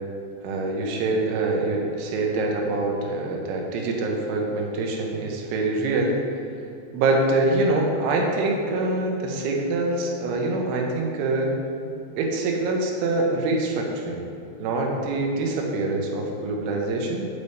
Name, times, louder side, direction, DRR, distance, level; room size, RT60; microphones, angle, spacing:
voice 1, 0.4-6.2 6.9-11.5 12.2-14.2 14.6-17.3, right 2 dB, 80° right, 0 dB, 2.5 m, -25 dB
8.2 x 3.4 x 4.1 m, 2.6 s
omnidirectional pair, 4.9 m